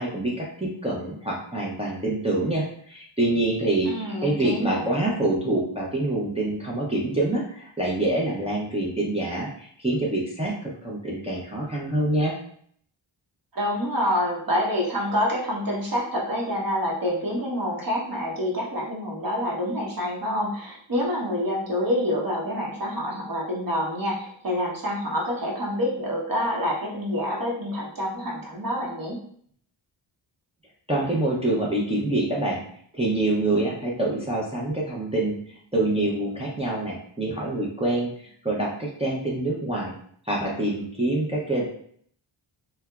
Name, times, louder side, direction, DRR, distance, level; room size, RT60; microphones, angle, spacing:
voice 1, 0.0-3.9 4.2-12.3 30.9-32.6 32.9-40.0 40.2-41.6, right 2 dB, 15° right, -4 dB, 0.4 m, -26 dB
voice 2, 3.9-4.8 13.5-29.2, equal, 45° right, -2 dB, 0.8 m, -27 dB
2.7 x 2.1 x 2.3 m, 0.62 s
wide cardioid pair, 80°, 50 cm